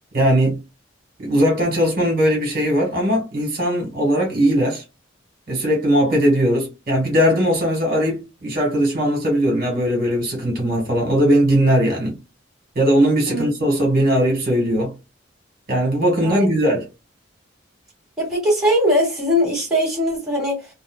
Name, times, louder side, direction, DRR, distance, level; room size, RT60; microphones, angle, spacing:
voice 1, 0.1-0.6 1.2-4.8 5.5-12.2 12.7-14.9 15.7-16.9, equal, 50° right, 1.5 m, -19 dB
voice 2, 18.2-20.7, equal, ahead, 1.7 m, -20 dB
3.5 x 2.0 x 2.3 m
head